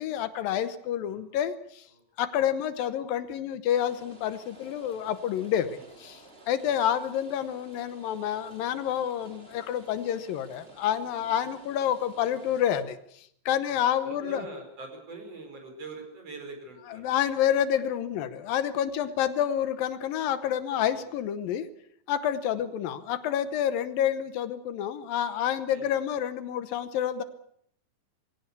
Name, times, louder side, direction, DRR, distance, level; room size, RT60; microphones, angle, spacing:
voice 1, 0.0-1.9 2.2-14.4 16.9-21.7 22.1-27.2, left 10 dB, 75° left, 12 dB, 2.7 m, -28 dB
Rain, 3.7-12.8, right 2 dB, 15° right, 2.8 m, -53 dB
voice 2, 13.7-17.2 20.9-21.1 25.7-25.9, right 2 dB, 40° right, 4 dB, 5.8 m, -43 dB
22.0 x 17.0 x 8.3 m, 0.70 s
omnidirectional pair, 4.2 m